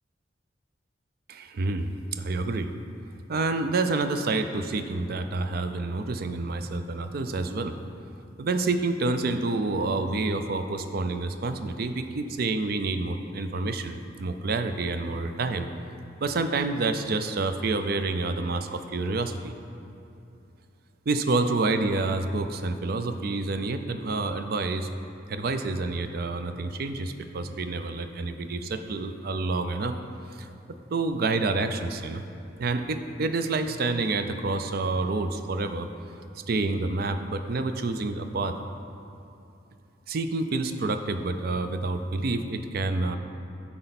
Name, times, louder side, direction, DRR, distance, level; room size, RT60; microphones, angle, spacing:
voice 1, 1.3-2.7 3.3-7.7 8.4-15.7 16.2-19.5 21.1-24.9 25.3-29.9 30.3-30.5 30.9-32.2 32.6-35.9 36.5-38.5 40.1-43.2, right 3 dB, 55° right, 8 dB, 0.4 m, -28 dB
12.0 x 4.4 x 4.1 m, 2.8 s
head